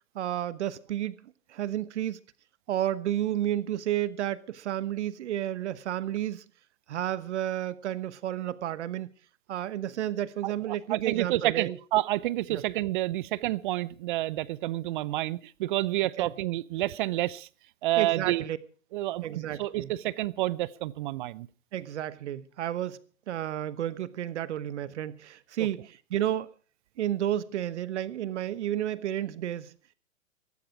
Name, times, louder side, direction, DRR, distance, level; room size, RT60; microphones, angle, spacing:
voice 1, 0.1-1.2 1.5-2.2 2.7-6.4 6.9-9.1 9.5-11.7 12.5-12.6 16.2-16.3 18.0-18.6 19.2-19.9 21.7-23.0 23.3-26.5 27.0-29.7, right 12 dB, 60° right, 1.1 m, -31 dB
voice 2, 10.4-17.5 17.8-18.4 18.9-21.5, right 16 dB, 40° right, 0.7 m, -29 dB
16.5 x 15.5 x 4.8 m
figure-of-eight pair, 115°, 40 cm